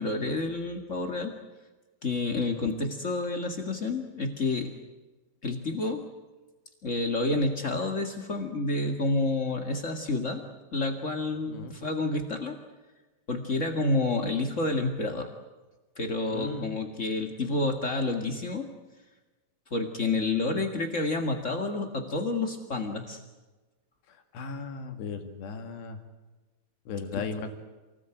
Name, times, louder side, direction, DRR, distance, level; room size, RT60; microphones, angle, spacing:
voice 1, 0.0-1.3 2.0-4.7 5.4-6.0 6.8-10.4 10.7-12.5 13.3-15.3 16.0-18.7 19.7-23.2, left 2 dB, 40° left, 4 dB, 1.0 m, -29 dB
voice 2, 16.3-16.7 24.1-26.0 26.9-27.5, left 5 dB, 80° left, 6 dB, 4.3 m, -36 dB
29.0 x 20.5 x 9.1 m, 1.2 s
omnidirectional pair, 4.8 m